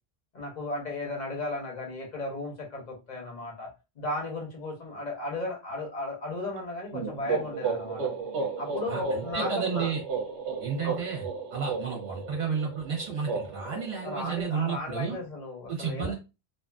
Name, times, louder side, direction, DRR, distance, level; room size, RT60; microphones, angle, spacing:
voice 1, 0.3-3.7 4.0-8.1 8.6-9.9 10.8-10.9 14.0-16.1, left 2 dB, 45° left, 0 dB, 0.9 m, -35 dB
sound 1, 6.9-14.6, right 4 dB, 90° right, 0.9 m, -34 dB
voice 2, 8.8-10.0 10.6-11.2 11.5-15.2 15.7-16.1, right 6 dB, 45° right, -1 dB, 0.8 m, -32 dB
2.5 x 2.5 x 2.3 m, 0.28 s
omnidirectional pair, 1.1 m